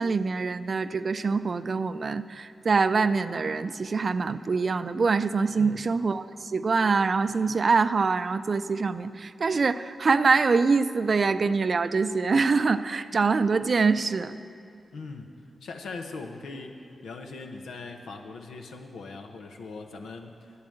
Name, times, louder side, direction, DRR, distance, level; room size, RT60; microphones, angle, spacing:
voice 1, 0.0-14.4, right 4 dB, 55° right, 13 dB, 0.4 m, -24 dB
voice 2, 14.9-15.3 15.6-16.7 17.0-20.4, left 3 dB, 85° left, 4 dB, 0.9 m, -40 dB
9.8 x 8.6 x 7.7 m, 2.4 s
supercardioid pair, 40°, 0 cm